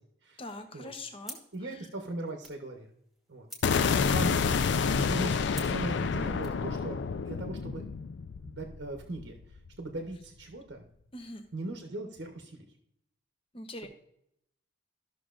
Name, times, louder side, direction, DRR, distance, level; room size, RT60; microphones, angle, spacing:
voice 1, 0.4-1.4 1.6-1.9 11.1-11.4 13.5-13.9, left 2 dB, 30° left, 6 dB, 0.8 m, -43 dB
sound 1, 1.2-6.6, right 1 dB, ahead, 1.2 m, -51 dB
voice 2, 1.5-2.9 3.3-4.3 5.0-7.8 8.4-10.9 11.5-12.7, right 2 dB, 65° right, 3 dB, 0.9 m, -39 dB
sound 2, 3.6-9.7, left 5 dB, 65° left, 0.4 m, -29 dB
13.5 x 6.1 x 2.5 m, 0.76 s
head